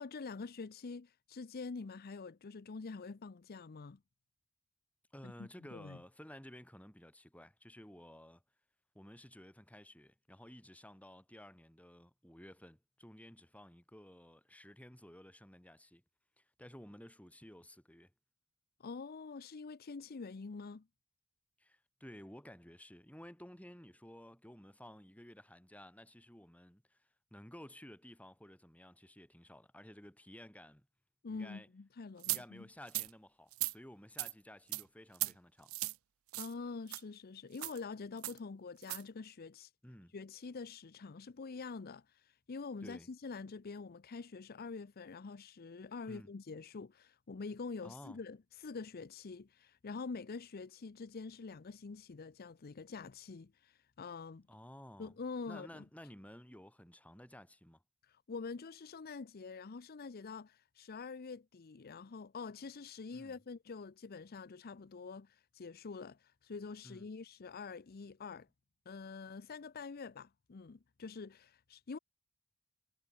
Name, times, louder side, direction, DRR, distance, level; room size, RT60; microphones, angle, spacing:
voice 1, 0.0-4.0 5.2-6.0 18.8-20.9 31.2-32.6 36.3-39.7 40.1-54.4 55.0-55.8 58.0-68.5 68.9-72.0, left 4 dB, 45° left, 0.6 m, -46 dB
voice 2, 5.1-8.4 8.9-16.0 16.4-18.1 21.6-30.9 31.3-31.7 32.3-35.8 39.8-40.2 42.8-43.1 46.1-46.3 47.8-48.2 54.5-55.2 55.5-57.8 63.1-63.4 66.8-67.1, equal, 5° left, 3.8 m, -54 dB
sound 1, 32.2-32.4 32.9-33.1 33.5-33.7 34.2-34.3 34.7-34.8 35.1-35.3 35.7-36.0 36.3-36.5 36.9-37.0 37.6-37.8 38.2-38.4 38.8-39.0, right 21 dB, 75° right, 0.4 m, -37 dB
head